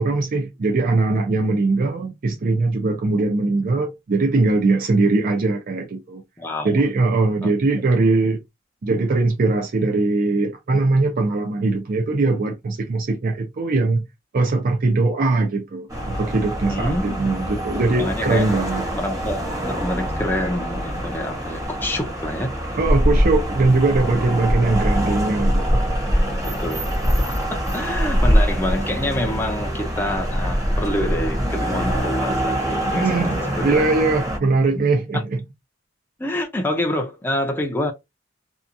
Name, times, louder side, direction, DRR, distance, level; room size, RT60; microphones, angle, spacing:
voice 1, 0.0-6.2 6.6-8.4 8.8-14.0 14.3-18.8 22.8-25.8 32.8-35.4, right 3 dB, 45° right, 0.4 m, -21 dB
voice 2, 6.4-6.8 7.4-7.5 16.7-17.5 18.0-18.5 18.9-22.8 26.5-26.9 27.2-33.9 35.1-35.2 36.2-37.9, left 1 dB, 10° left, 0.5 m, -27 dB
sound 1, 15.9-34.4, equal, 20° right, 0.9 m, -23 dB
2.8 x 2.2 x 2.5 m
head